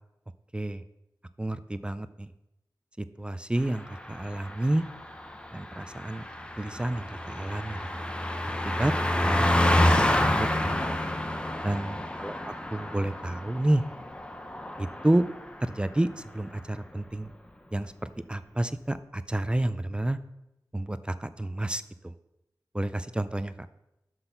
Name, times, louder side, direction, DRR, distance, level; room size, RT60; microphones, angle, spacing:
voice 1, 1.4-2.3 3.2-4.9 5.5-6.2 6.6-7.9 8.6-8.9 9.2-10.0 10.3-10.8 11.6-12.3 12.7-13.8 14.8-15.2 15.6-17.3 17.7-17.9 18.3-20.2 20.7-22.1 22.7-23.5, right 1 dB, 15° right, 13 dB, 0.4 m, -29 dB
Car passing by, 3.7-15.6 15.9-16.1, left 1 dB, 15° left, 0.7 m, -29 dB
6.1 x 5.7 x 6.7 m, 0.90 s
wide cardioid pair, 85°, 7 cm